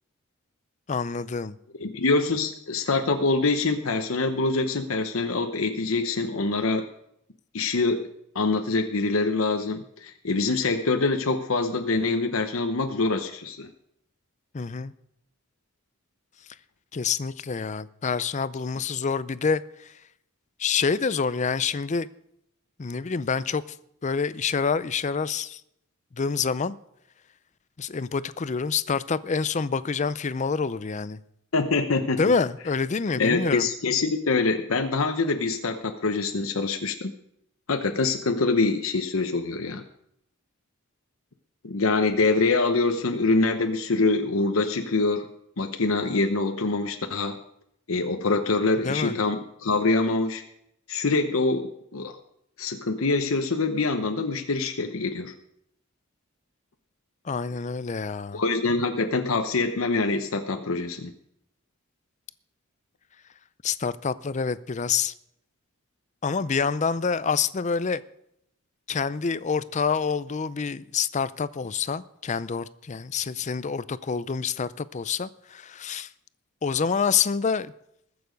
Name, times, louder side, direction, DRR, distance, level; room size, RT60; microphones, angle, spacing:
voice 1, 0.9-1.6 14.5-14.9 16.9-19.9 20.6-22.1 22.8-23.8 24.0-25.6 26.1-26.8 27.8-31.2 32.2-33.7 48.8-49.2 57.2-58.4 63.6-65.1 66.2-68.0 68.9-76.1 76.6-77.7, left 5 dB, 35° left, 0.5 m, -27 dB
voice 2, 1.8-6.9 7.5-8.1 8.3-13.7 31.5-32.2 33.2-37.1 37.7-39.8 41.6-45.3 45.6-47.4 47.9-50.4 50.9-52.2 52.6-55.3 58.3-61.1, left 3 dB, 70° left, 0.9 m, -25 dB
21.0 x 7.0 x 5.2 m
head